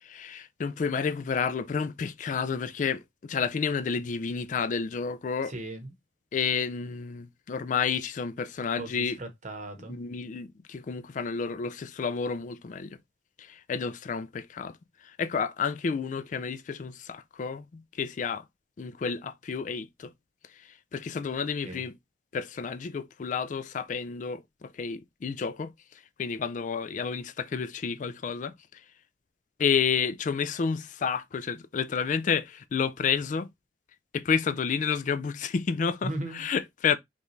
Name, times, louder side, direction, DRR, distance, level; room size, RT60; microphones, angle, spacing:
voice 1, 0.0-5.5 6.3-9.2 9.9-13.0 13.4-14.8 15.0-18.4 18.8-20.1 20.9-22.0 22.3-25.7 26.2-28.8 29.6-33.5 34.1-37.0, left 6 dB, 45° left, 0.3 m, -30 dB
voice 2, 5.5-5.9 8.8-10.0 21.6-21.8 36.0-36.5, right 1 dB, 45° right, 1.1 m, -37 dB
5.3 x 2.4 x 3.1 m
head